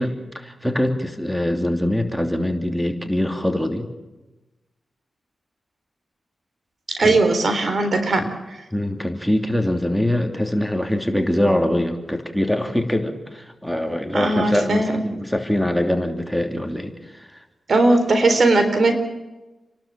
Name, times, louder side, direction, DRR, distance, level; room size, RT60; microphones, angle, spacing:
voice 1, 0.0-3.9 7.0-7.2 8.2-8.3 8.7-17.4, left 1 dB, ahead, 5 dB, 2.9 m, -23 dB
voice 2, 7.0-8.3 14.1-14.9 17.7-18.9, right 2 dB, 60° right, 7 dB, 3.7 m, -18 dB
30.0 x 12.0 x 7.4 m, 1.1 s
cardioid pair, 55°, 0 cm